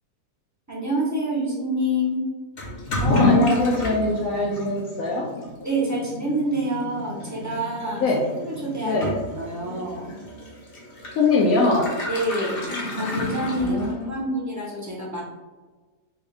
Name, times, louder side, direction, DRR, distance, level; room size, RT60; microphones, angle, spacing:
voice 1, 0.7-2.2 5.6-8.1 8.4-9.0 9.3-10.1 12.1-13.8 14.1-15.2, right 1 dB, 15° right, -6 dB, 0.6 m, -27 dB
Toilet flush / Liquid, 2.6-14.2, left 2 dB, 45° left, 1.0 m, -29 dB
voice 2, 3.0-5.3 8.0-8.3 8.8-9.1 11.1-11.9 13.6-14.2, left 2 dB, 70° left, -2 dB, 0.9 m, -22 dB
4.3 x 2.3 x 3.3 m, 1.3 s
omnidirectional pair, 1.6 m